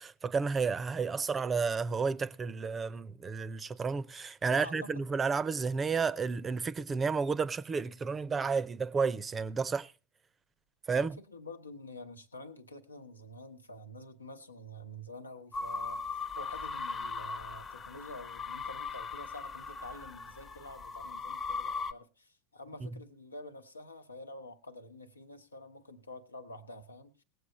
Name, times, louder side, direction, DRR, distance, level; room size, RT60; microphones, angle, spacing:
voice 1, 0.0-9.9 10.9-11.2, right 5 dB, 20° right, 0.6 m, -31 dB
voice 2, 4.5-5.1 10.9-27.2, left 1 dB, 85° left, 1.0 m, -48 dB
sound 1, 15.5-21.9, left 4 dB, 25° left, 0.9 m, -39 dB
19.0 x 8.1 x 4.1 m
figure-of-eight pair, 85°, 0 cm